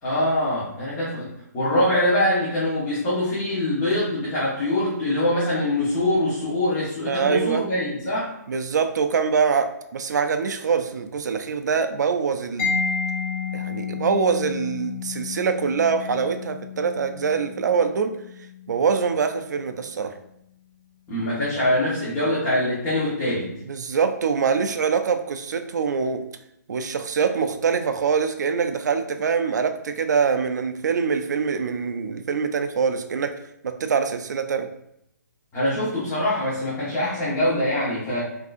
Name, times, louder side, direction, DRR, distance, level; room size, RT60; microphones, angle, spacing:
voice 1, 0.0-8.3 21.1-23.5 35.5-38.3, left 1 dB, 20° left, -10 dB, 0.9 m, -24 dB
voice 2, 7.1-7.7 8.5-12.8 13.5-18.1 18.7-20.1 23.6-26.2 26.7-33.3 33.6-34.7, right 6 dB, 70° right, 8 dB, 0.4 m, -24 dB
Mallet percussion, 12.6-20.1, left 6 dB, 40° left, 0.6 m, -32 dB
3.5 x 2.7 x 2.4 m, 0.77 s
hypercardioid pair, 155°, 10 cm